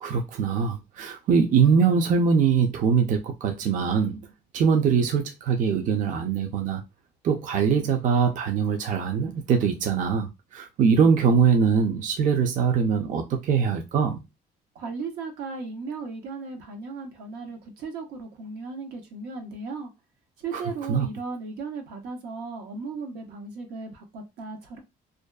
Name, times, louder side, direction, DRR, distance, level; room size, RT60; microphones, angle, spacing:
voice 1, 0.0-4.2 4.5-6.8 7.2-14.2 20.5-20.6 20.9-21.1, right 6 dB, 50° right, 0.5 m, -22 dB
voice 2, 14.7-19.9 20.4-24.8, right 4 dB, 85° right, 0.8 m, -36 dB
2.5 x 2.3 x 2.2 m
cardioid pair, 110°, 17 cm